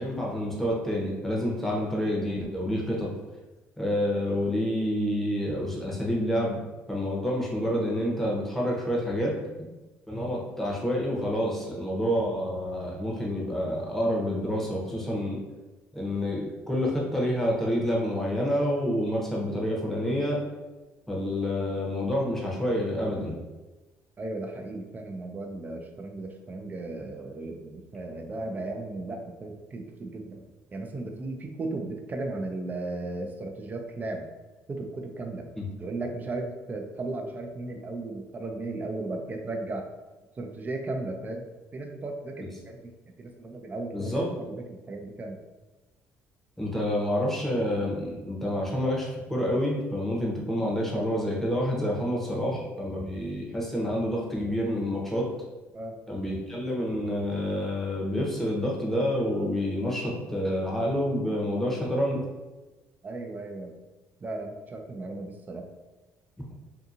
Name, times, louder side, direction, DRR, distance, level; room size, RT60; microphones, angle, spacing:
voice 1, 0.0-3.1 3.8-6.6 6.9-9.3 10.1-15.4 15.9-20.4 21.1-23.4 35.6-35.7 42.4-42.5 43.9-44.3 46.6-55.3 56.1-62.2, equal, 5° left, -3 dB, 0.8 m, -28 dB
voice 2, 24.2-30.4 30.7-34.3 34.7-35.5 35.8-39.9 40.4-41.4 41.7-42.9 43.2-44.1 44.5-45.4 55.7-56.0 63.0-63.7 64.2-65.7, right 2 dB, 30° right, 3 dB, 0.5 m, -35 dB
2.7 x 2.5 x 2.5 m, 1.1 s
supercardioid pair, 80°, 6 cm